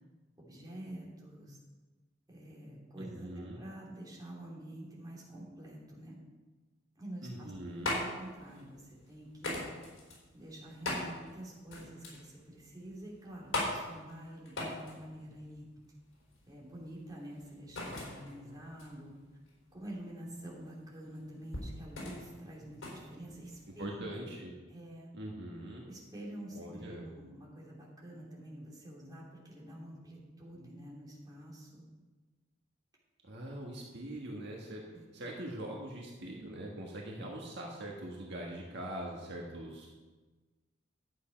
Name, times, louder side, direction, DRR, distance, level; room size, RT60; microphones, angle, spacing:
voice 1, 0.4-1.6 2.3-6.2 6.9-7.5 7.9-9.7 10.3-15.7 16.5-19.1 19.7-24.3 24.7-25.1 25.9-31.9 33.5-33.7 34.9-35.0, right 1 dB, 20° right, -4 dB, 2.9 m, -47 dB
voice 2, 3.0-3.6 7.2-7.9 23.8-24.5 25.1-25.8 26.5-27.1 33.2-34.8 35.1-39.9, right 1 dB, 60° right, -1 dB, 1.6 m, -42 dB
sound 1, 7.3-23.9, left 1 dB, 80° left, 3.9 m, -41 dB
11.5 x 8.3 x 5.2 m, 1.3 s
head